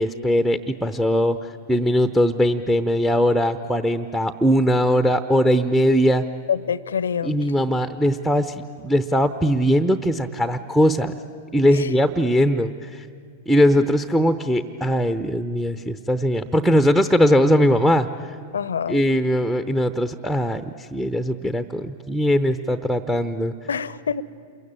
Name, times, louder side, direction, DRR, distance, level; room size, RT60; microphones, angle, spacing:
voice 1, 0.0-6.2 7.2-11.2 11.5-13.1 13.5-18.1 18.9-23.5, equal, 5° right, 0.8 m, -20 dB
voice 2, 6.5-7.4 11.7-11.9 18.5-19.1 23.7-24.2, left 7 dB, 70° left, 0.7 m, -26 dB
28.0 x 23.0 x 8.9 m
figure-of-eight pair, 95°, 0 cm